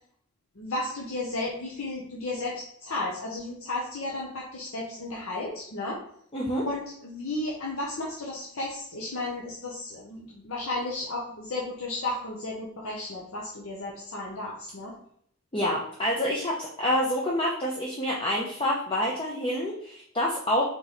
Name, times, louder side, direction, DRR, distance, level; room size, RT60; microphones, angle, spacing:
voice 1, 0.6-6.0 6.7-14.9, left 2 dB, 70° left, -3 dB, 0.8 m, -33 dB
voice 2, 6.3-6.6 15.5-20.6, left 1 dB, 25° left, -3 dB, 0.5 m, -27 dB
3.8 x 3.1 x 4.0 m, 0.66 s
head